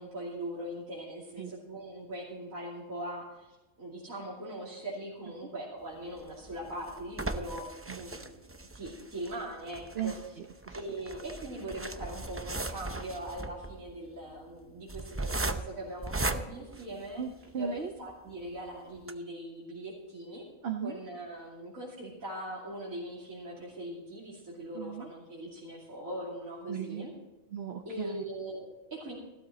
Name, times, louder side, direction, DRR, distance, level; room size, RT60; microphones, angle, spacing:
voice 1, 0.0-7.7 7.9-8.4 8.7-10.4 10.7-17.2 17.6-20.4 20.8-27.1 27.8-29.1, right 1 dB, 85° right, -6 dB, 3.2 m, -41 dB
sound 1, 6.2-17.6 18.1-18.2 18.5-18.6 19.0-19.1, right 2 dB, 20° right, 0.3 m, -38 dB
voice 2, 9.9-10.8 17.2-17.9 20.6-21.0 24.7-25.1 26.7-27.1 27.5-28.2, right 7 dB, 55° right, 5 dB, 1.0 m, -37 dB
15.0 x 13.0 x 4.2 m, 1.1 s
omnidirectional pair, 1.4 m